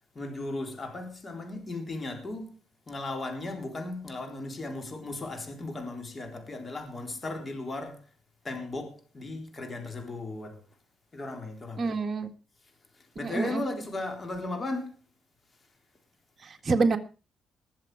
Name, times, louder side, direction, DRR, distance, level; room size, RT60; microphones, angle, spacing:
voice 1, 0.2-2.5 2.9-8.1 8.4-10.6 11.1-11.9 12.9-15.0, left 2 dB, 30° left, 3.8 m, -36 dB
voice 2, 11.8-12.3 13.2-13.6 16.4-17.0, right 4 dB, 40° right, 1.7 m, -27 dB
20.0 x 7.6 x 4.9 m
cardioid pair, 90°, 0 cm